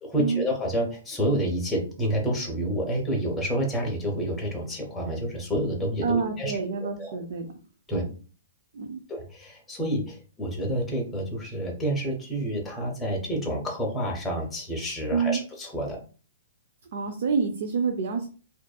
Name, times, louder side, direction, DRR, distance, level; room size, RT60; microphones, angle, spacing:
voice 1, 0.0-6.5 7.0-7.1 7.9-8.0 9.1-16.0, equal, 10° left, -1 dB, 0.7 m, -29 dB
voice 2, 6.0-7.5 7.9-8.0 8.7-9.0 15.1-15.4 16.9-18.3, right 5 dB, 60° right, 4 dB, 0.4 m, -27 dB
2.6 x 2.4 x 2.2 m, 0.37 s
hypercardioid pair, 165°, 0 cm